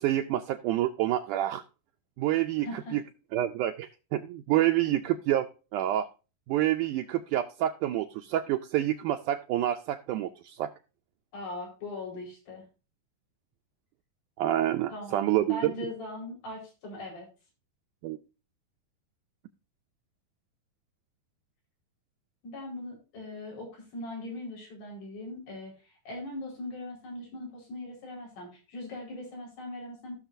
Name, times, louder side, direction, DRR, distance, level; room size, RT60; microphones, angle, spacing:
voice 1, 0.0-1.6 2.2-2.7 2.9-3.0 3.3-6.1 6.5-10.7 14.4-15.7 18.0-18.2, right 13 dB, 80° right, 6 dB, 1.8 m, -28 dB
voice 2, 2.6-3.0 4.9-5.0 11.3-12.6 14.9-17.3 22.4-30.1, left 2 dB, 85° left, -2 dB, 6.5 m, -40 dB
15.0 x 6.6 x 2.6 m, 0.32 s
omnidirectional pair, 4.1 m